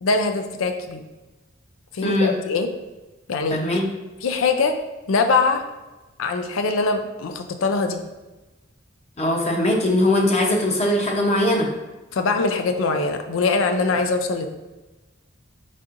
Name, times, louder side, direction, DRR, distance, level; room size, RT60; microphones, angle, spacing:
voice 1, 0.0-1.0 1.9-2.7 3.3-3.6 4.2-4.8 5.1-5.6 6.2-8.0 12.1-14.5, left 4 dB, 85° left, 7 dB, 0.5 m, -22 dB
voice 2, 2.0-2.3 3.5-3.9 9.2-11.7, left 1 dB, 35° left, 0 dB, 0.7 m, -20 dB
4.7 x 4.1 x 2.5 m, 1.1 s
head